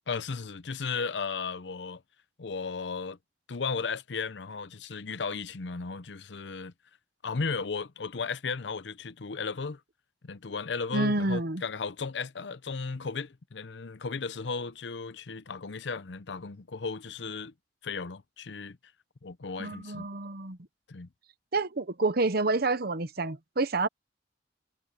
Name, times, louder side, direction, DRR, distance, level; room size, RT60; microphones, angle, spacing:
voice 1, 0.1-2.0 2.4-3.2 3.5-6.7 7.2-9.8 10.2-17.5 17.8-18.8 19.2-20.1 20.9-21.1, left 4 dB, 75° left, 0.7 m, -35 dB
voice 2, 10.9-11.6 19.6-20.6 21.5-23.9, right 3 dB, 60° right, 1.0 m, -28 dB
head